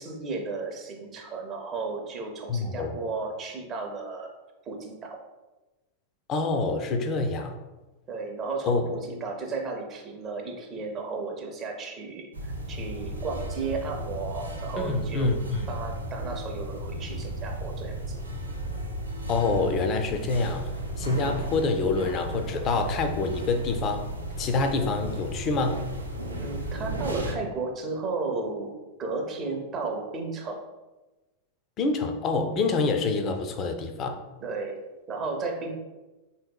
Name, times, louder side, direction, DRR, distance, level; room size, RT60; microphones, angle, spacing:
voice 1, 0.0-4.3 4.6-5.2 8.1-18.2 26.4-30.7 34.4-34.8 35.1-35.7, right 3 dB, 30° right, 2 dB, 0.5 m, -34 dB
voice 2, 2.5-3.0 6.3-7.6 8.6-8.8 14.8-15.7 19.3-20.7 21.0-24.1 24.4-25.9 31.8-34.2, left 3 dB, 30° left, 6 dB, 0.4 m, -26 dB
sound 1, 12.3-27.3, right 1 dB, 80° right, 0.4 m, -34 dB
3.5 x 2.7 x 2.2 m, 1.1 s
figure-of-eight pair, 90°, 0 cm